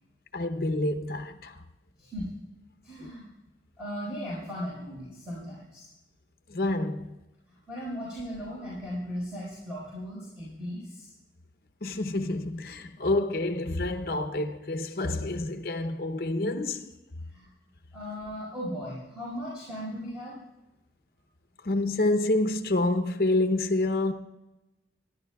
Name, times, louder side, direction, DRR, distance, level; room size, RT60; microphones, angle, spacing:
voice 1, 0.3-1.6 3.0-3.1 6.5-7.2 11.8-16.9 21.6-24.1, left 2 dB, 55° left, 0.8 m, -28 dB
voice 2, 2.0-2.3 2.8-3.3 3.8-5.9 7.5-11.1 17.3-17.5 17.9-20.4, equal, 5° right, 4.6 m, -37 dB
25.0 x 11.0 x 2.3 m
head